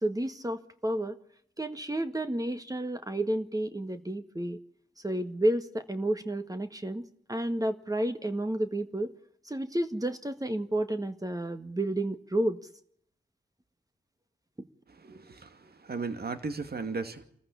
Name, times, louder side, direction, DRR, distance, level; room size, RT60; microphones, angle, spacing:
voice 1, 0.0-1.2 1.6-4.6 5.0-9.1 9.4-12.6 14.6-14.7, right 1 dB, 20° right, 1.8 m, -31 dB
voice 2, 14.9-17.2, right 4 dB, 55° right, 2.4 m, -36 dB
27.0 x 14.5 x 8.6 m
supercardioid pair, 40°, 19 cm